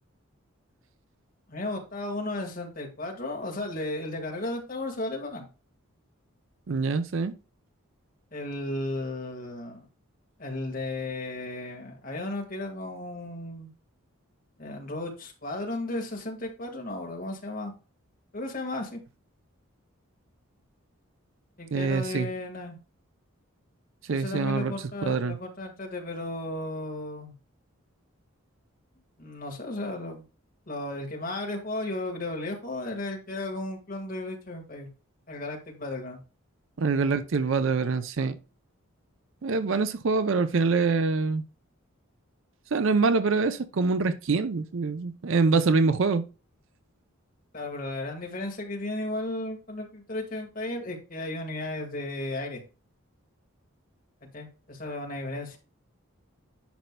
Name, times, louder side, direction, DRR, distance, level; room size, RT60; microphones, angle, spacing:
voice 1, 1.5-5.5 8.3-9.9 10.4-13.7 14.6-17.7 18.3-19.0 21.6-22.8 24.1-27.3 29.2-30.2 30.7-34.9 35.3-36.2 47.5-52.6 54.2-55.6, left 2 dB, 40° left, 1.7 m, -34 dB
voice 2, 6.7-7.3 21.7-22.3 24.1-24.7 25.0-25.4 36.8-38.4 39.4-41.4 42.7-46.2, right 4 dB, 65° right, 0.5 m, -25 dB
10.5 x 5.5 x 2.2 m
head